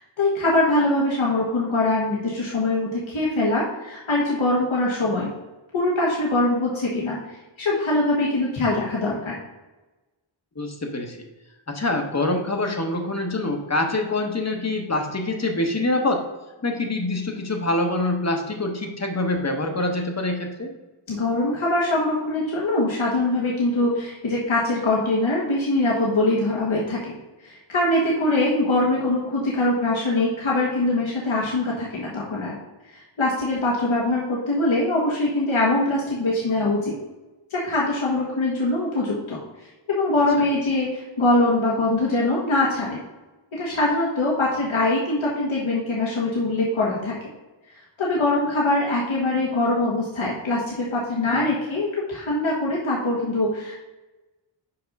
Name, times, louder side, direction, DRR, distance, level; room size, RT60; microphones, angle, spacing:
voice 1, 0.0-5.3 5.7-7.2 7.6-9.4 21.1-27.2 27.4-32.6 32.9-36.9 37.5-39.4 39.9-43.0 43.5-47.1 48.0-53.7, left 2 dB, 80° left, -5 dB, 1.5 m, -23 dB
voice 2, 10.6-11.3 11.7-16.2 16.6-20.7 51.3-51.5, left 2 dB, 35° left, 3 dB, 1.1 m, -25 dB
5.7 x 5.2 x 5.2 m, 1.1 s
wide cardioid pair, 85°, 47 cm